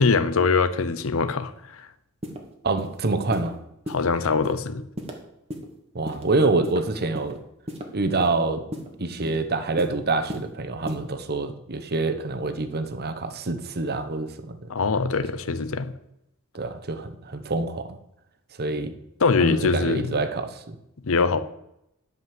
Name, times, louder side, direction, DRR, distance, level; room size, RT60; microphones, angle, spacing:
voice 1, 0.0-1.9 3.9-4.8 14.7-15.9 19.2-20.1 21.0-21.4, left 4 dB, 70° left, 0.8 m, -23 dB
sound 1, 2.2-2.4 2.8-2.9 3.3-3.5 3.9-4.0 4.4-4.6 5.0-5.1 5.5-5.7 6.0-6.2 6.6-7.3 7.7-7.8 8.2-8.4 8.7-8.9 9.2-9.4 9.8-10.0 10.3-10.5 10.9-11.0, equal, 30° right, 1.7 m, -34 dB
voice 2, 2.6-3.6 5.9-7.4 7.9-8.6 9.0-14.6 16.5-17.9 18.6-18.9 19.4-20.8, right 3 dB, 45° right, 1.1 m, -26 dB
11.0 x 5.4 x 7.7 m
head